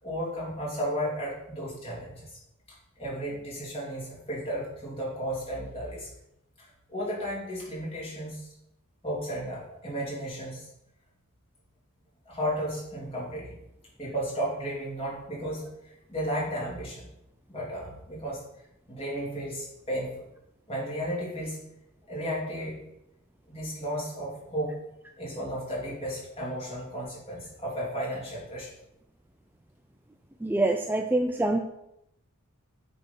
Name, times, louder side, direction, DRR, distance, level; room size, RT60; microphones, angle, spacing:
voice 1, 0.0-2.3 3.0-6.1 6.6-8.5 9.0-10.7 12.2-13.6 14.0-17.1 17.5-18.4 18.9-20.1 20.7-21.6 22.1-22.8 23.5-24.8 25.2-28.7, equal, 25° left, -5 dB, 2.8 m, -34 dB
voice 2, 30.4-31.6, right 2 dB, 10° right, 4 dB, 0.3 m, -25 dB
7.9 x 4.3 x 5.6 m, 0.84 s
head